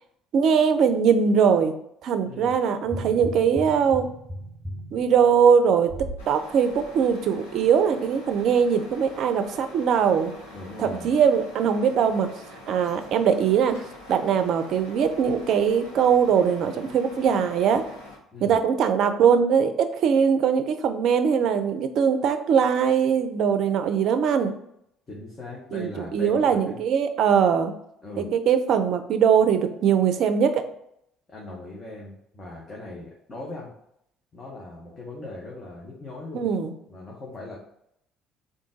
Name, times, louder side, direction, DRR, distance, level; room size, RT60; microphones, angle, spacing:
voice 1, 0.3-1.7 2.0-4.1 4.9-5.9 6.3-10.3 10.8-12.3 12.7-13.8 14.1-17.8 18.4-24.5 25.7-27.7 28.2-30.6 36.3-36.7, right 7 dB, 60° right, 9 dB, 0.4 m, -21 dB
voice 2, 2.2-2.5 10.5-11.1 18.3-18.6 25.1-26.8 28.0-28.3 31.3-33.7 34.3-36.5 36.9-37.6, left 2 dB, 35° left, -4 dB, 1.1 m, -39 dB
sound 1, 2.8-6.3 6.7-6.9, right 1 dB, 10° right, 1.4 m, -36 dB
Truck, 6.2-18.2, left 1 dB, 80° left, 1.0 m, -45 dB
3.8 x 2.6 x 3.7 m, 0.75 s
hypercardioid pair, 55°, 0 cm